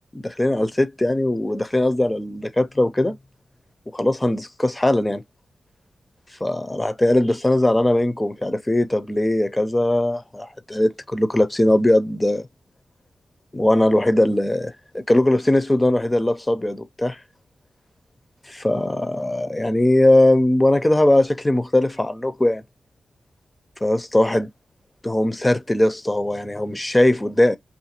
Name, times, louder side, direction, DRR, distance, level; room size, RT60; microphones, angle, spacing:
voice 1, 0.1-3.2 3.9-5.2 6.4-12.5 13.5-17.2 18.5-22.6 23.8-24.5 25.0-27.6, left 1 dB, 20° left, 0.4 m, -20 dB
2.5 x 2.4 x 2.8 m
cardioid pair, 60°, 0 cm